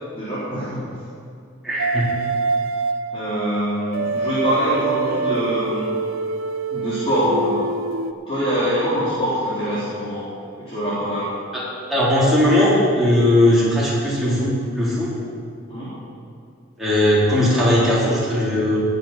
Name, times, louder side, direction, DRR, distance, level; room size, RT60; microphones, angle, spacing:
voice 1, 0.1-0.9 3.1-6.0 6.7-7.6 8.3-10.3 10.6-11.3 15.7-15.9, equal, 25° left, -12 dB, 3.5 m, -23 dB
voice 2, 1.6-2.1 11.5-11.6 11.9-15.1 16.8-18.8, left 1 dB, ahead, -9 dB, 3.8 m, -18 dB
sound 1, 1.8-8.1, right 4 dB, 75° right, 0.6 m, -25 dB
19.5 x 6.9 x 5.8 m, 2.4 s
head